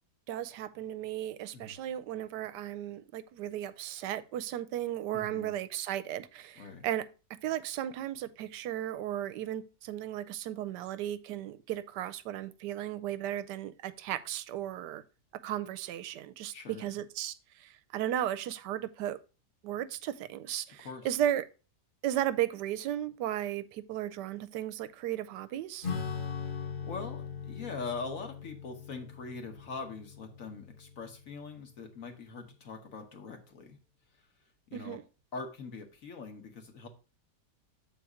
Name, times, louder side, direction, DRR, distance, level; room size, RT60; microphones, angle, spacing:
voice 1, 0.3-7.0 7.4-15.0 15.4-19.2 19.6-21.4 22.0-25.9 34.7-35.0, right 11 dB, 85° right, 1.2 m, -35 dB
voice 2, 5.1-5.5 6.6-6.8 16.5-16.9 20.8-21.1 26.4-33.8 34.7-35.0 35.3-36.9, left 4 dB, 55° left, 1.5 m, -42 dB
Acoustic guitar / Strum, 25.8-31.8, left 6 dB, 35° left, 1.2 m, -40 dB
7.0 x 4.1 x 4.8 m
omnidirectional pair, 1.8 m